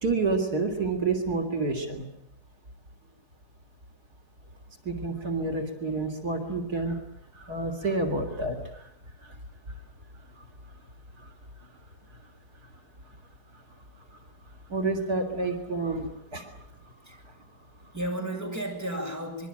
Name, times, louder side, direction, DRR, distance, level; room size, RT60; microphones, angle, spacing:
voice 1, 0.0-2.1 4.9-7.0 7.3-8.9 9.2-9.4 11.2-11.3 11.6-11.7 14.7-16.5, right 3 dB, 75° right, 4 dB, 3.8 m, -29 dB
voice 2, 16.7-17.4 17.9-19.5, right 1 dB, 10° right, 1 dB, 7.6 m, -34 dB
26.0 x 23.0 x 9.1 m, 0.72 s
omnidirectional pair, 1.7 m